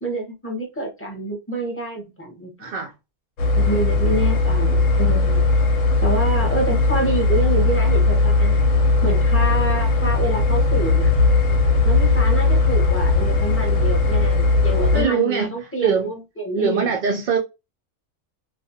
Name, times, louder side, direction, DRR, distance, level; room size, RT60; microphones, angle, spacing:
voice 1, 0.0-2.8 3.5-5.5 6.0-8.6 9.0-11.1 11.8-16.9, right 2 dB, 15° left, 0.6 m, -27 dB
voice 2, 2.6-2.9 14.9-16.1 16.6-17.4, right 6 dB, 65° right, 0.4 m, -22 dB
sound 1, 3.4-15.0, left 3 dB, 85° left, 1.1 m, -18 dB
2.5 x 2.3 x 2.6 m
omnidirectional pair, 1.3 m